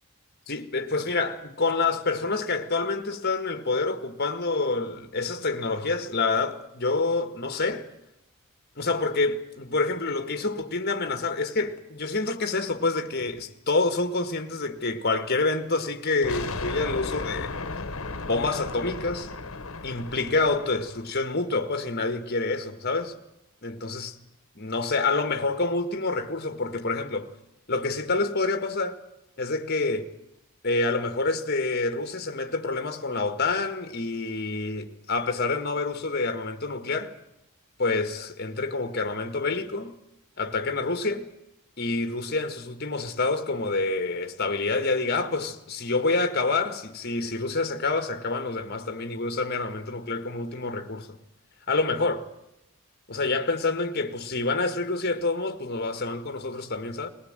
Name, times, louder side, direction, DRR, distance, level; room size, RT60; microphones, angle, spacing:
voice 1, 0.5-7.9 8.8-17.8 18.3-19.3 19.8-23.1 23.6-24.2 24.6-27.3 27.7-29.0 29.4-30.1 30.6-37.1 37.8-39.9 40.4-41.3 41.8-51.2 51.7-52.3 53.1-57.1, left 3 dB, 45° left, 1.8 m, -27 dB
sound 1, 16.2-21.1, left 3 dB, 70° left, 1.6 m, -35 dB
20.5 x 19.0 x 9.0 m
head